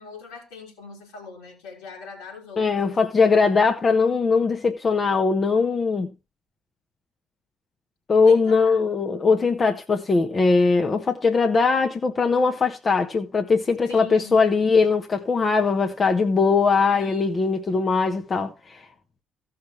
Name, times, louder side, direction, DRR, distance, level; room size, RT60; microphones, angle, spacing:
voice 1, 0.0-3.0 8.2-8.8 13.9-14.4 16.9-17.3, left 4 dB, 70° left, 4.1 m, -41 dB
voice 2, 2.6-6.1 8.1-18.9, left 4 dB, 35° left, 1.1 m, -20 dB
16.0 x 5.9 x 3.2 m
figure-of-eight pair, 45°, 0 cm